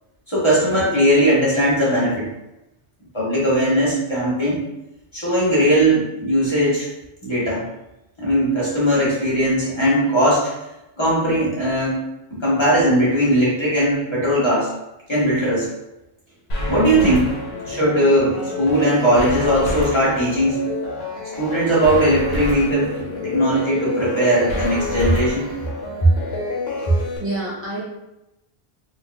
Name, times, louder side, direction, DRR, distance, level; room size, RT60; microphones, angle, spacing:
voice 1, 0.3-2.3 3.1-4.7 5.1-6.9 7.2-7.6 8.2-10.5 11.0-12.0 12.3-14.7 15.1-15.7 16.7-17.3 17.7-20.7 21.4-22.9 23.2-25.5, right 1 dB, 25° left, -8 dB, 1.1 m, -19 dB
sound 1, 16.5-27.2, left 2 dB, 70° left, 1.1 m, -28 dB
voice 2, 17.5-17.8 26.8-27.8, right 1 dB, 20° right, -9 dB, 0.4 m, -30 dB
4.3 x 2.6 x 2.3 m, 0.92 s
omnidirectional pair, 1.1 m